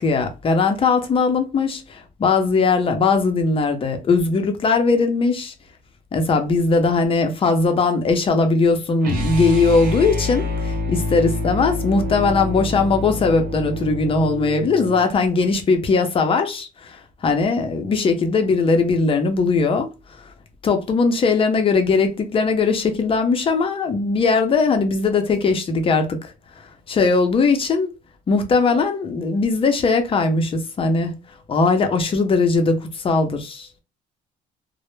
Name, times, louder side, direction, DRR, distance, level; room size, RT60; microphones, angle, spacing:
voice 1, 0.0-5.5 6.1-19.9 20.6-26.3 26.9-27.9 28.3-31.1 31.5-33.8, left 4 dB, 30° left, 0.5 m, -19 dB
sound 1, 9.0-15.1, left 1 dB, 55° right, 0.7 m, -27 dB
2.0 x 2.0 x 3.0 m
cardioid pair, 110°, 17 cm